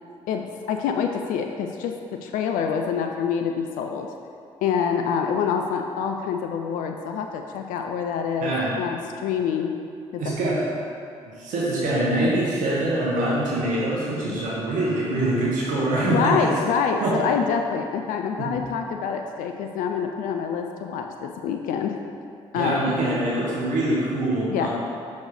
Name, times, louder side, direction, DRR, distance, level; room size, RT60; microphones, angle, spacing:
voice 1, 0.3-1.9 2.2-4.1 4.6-9.7 10.1-10.4 14.2-14.4 16.0-22.0 22.5-22.9 24.5-24.7, left 6 dB, 70° left, 4 dB, 0.4 m, -26 dB
voice 2, 10.2-10.7 11.4-16.5 17.0-17.1 18.4-18.5 22.5-24.7, right 1 dB, 65° right, -6 dB, 1.4 m, -24 dB
6.2 x 4.1 x 4.9 m, 2.4 s
hypercardioid pair, 45°, 14 cm